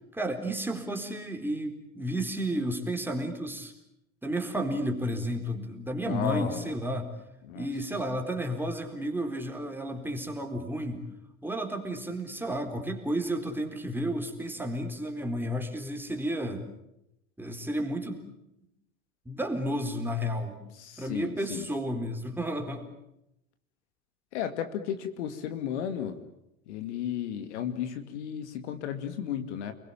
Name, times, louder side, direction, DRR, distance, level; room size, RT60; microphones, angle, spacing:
voice 1, 0.1-3.7 4.2-7.1 7.6-11.0 11.4-16.6 17.4-18.3 19.3-20.6 21.0-22.9, equal, 5° right, 4 dB, 4.1 m, -32 dB
voice 2, 6.1-6.7 7.5-7.7 20.8-21.7 24.3-26.2 26.7-29.7, left 9 dB, 55° left, 9 dB, 2.3 m, -34 dB
29.5 x 21.5 x 8.8 m, 0.83 s
figure-of-eight pair, 80°, 41 cm